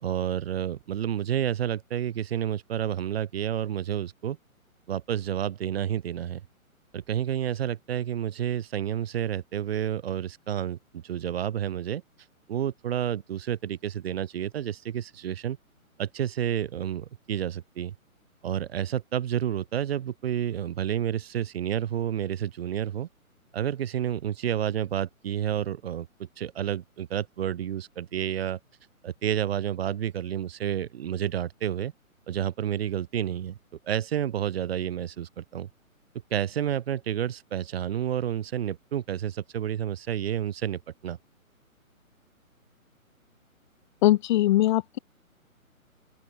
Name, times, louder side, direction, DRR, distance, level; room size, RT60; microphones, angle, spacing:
voice 1, 0.0-4.4 4.9-6.4 6.9-12.0 12.5-15.6 16.0-17.9 18.4-23.1 23.5-26.1 26.4-28.6 29.0-31.9 32.3-33.6 33.9-35.7 36.3-41.2, right 10 dB, 45° right, 2.9 m, -30 dB
voice 2, 44.0-45.0, left 15 dB, 35° left, 3.1 m, -21 dB
open air
figure-of-eight pair, 140°, 43 cm